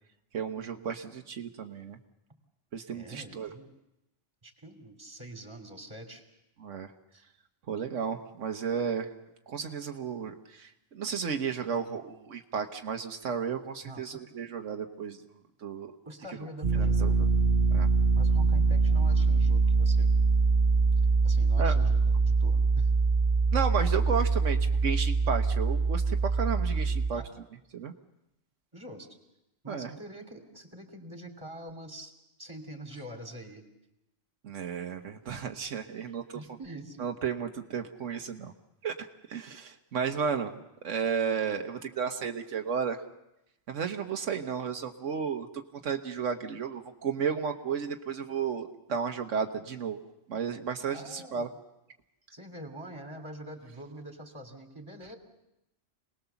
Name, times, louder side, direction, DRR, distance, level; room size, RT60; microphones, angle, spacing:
voice 1, 0.3-2.0 2.7-3.5 6.6-6.9 7.7-9.1 9.5-15.2 15.6-15.9 16.8-17.3 17.7-17.9 21.6-21.8 23.5-27.2 27.7-27.9 29.7-29.9 34.4-36.4 37.0-38.5 38.8-43.0 43.7-45.5 45.8-50.0 50.3-51.5, right 6 dB, 85° right, 5 dB, 1.4 m, -33 dB
voice 2, 2.9-3.7 4.4-6.2 7.1-7.2 13.8-14.2 16.0-17.2 18.1-20.1 21.2-22.9 27.1-27.3 28.7-29.1 29.6-32.1 32.4-33.6 36.1-37.1 50.9-51.5 52.3-55.2, right 1 dB, 25° right, 4 dB, 3.1 m, -45 dB
sound 1, 16.6-27.1, right 4 dB, 40° right, 1.2 m, -24 dB
27.0 x 19.5 x 7.0 m, 0.89 s
omnidirectional pair, 1.2 m